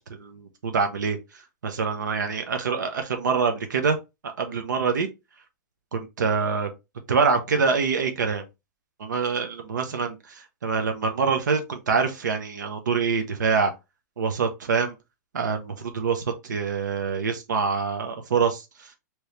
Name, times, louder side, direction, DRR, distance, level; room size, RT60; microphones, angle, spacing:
voice 1, 0.2-4.0 4.2-5.1 5.9-6.7 7.1-8.4 9.0-13.7 14.2-14.9 15.3-18.9, right 5 dB, 90° right, 0.6 m, -25 dB
3.1 x 2.8 x 3.1 m
hypercardioid pair, 135°, 10 cm